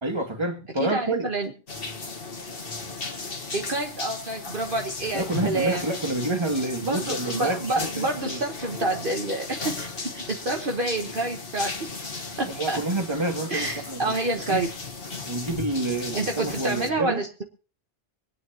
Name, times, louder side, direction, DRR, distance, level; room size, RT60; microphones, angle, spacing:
voice 1, 0.0-1.3 5.1-8.4 12.5-14.0 14.5-14.6 15.3-17.2, right 2 dB, 25° right, 1.8 m, -28 dB
voice 2, 0.8-1.5 3.5-5.9 6.8-12.1 12.4-12.8 13.5-14.7 16.1-17.4, right 2 dB, 50° right, 1.4 m, -28 dB
sound 1, 1.7-16.9, left 4 dB, 55° left, 1.8 m, -36 dB
25.5 x 9.6 x 2.9 m
omnidirectional pair, 1.2 m